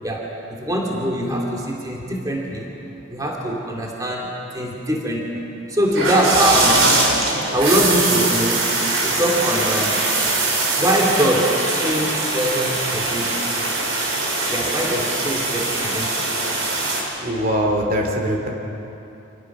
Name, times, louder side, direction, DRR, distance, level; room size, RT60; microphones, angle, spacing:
voice 1, 0.0-2.7 3.1-5.4 5.7-6.9 7.5-8.7 9.0-10.0 10.8-13.4 14.5-16.3, equal, 20° right, -1 dB, 2.5 m, -22 dB
sound 1, 5.9-17.0, right 2 dB, 80° right, 4.2 m, -22 dB
voice 2, 17.2-18.5, equal, 45° right, 1 dB, 2.6 m, -22 dB
26.5 x 19.0 x 6.0 m, 3.0 s
head